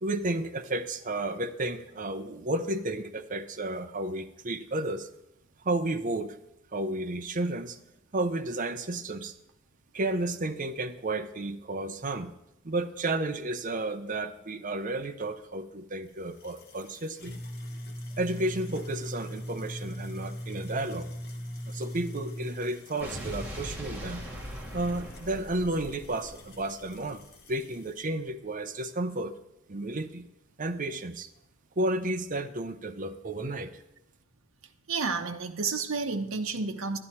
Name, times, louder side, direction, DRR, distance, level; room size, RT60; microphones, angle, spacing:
voice 1, 0.0-5.1 5.6-6.4 6.7-7.8 8.1-9.3 9.9-12.3 12.6-17.3 18.2-21.1 21.7-24.3 24.7-29.3 29.7-30.3 30.6-31.3 31.8-33.8, right 2 dB, 40° right, 8 dB, 0.7 m, -32 dB
sound 1, 16.1-28.1, equal, 50° left, 1.3 m, -41 dB
Explosion, 23.0-27.3, equal, 10° right, 2.4 m, -40 dB
voice 2, 34.9-37.0, right 4 dB, 85° right, 4 dB, 0.9 m, -30 dB
11.0 x 11.0 x 4.3 m, 0.84 s
head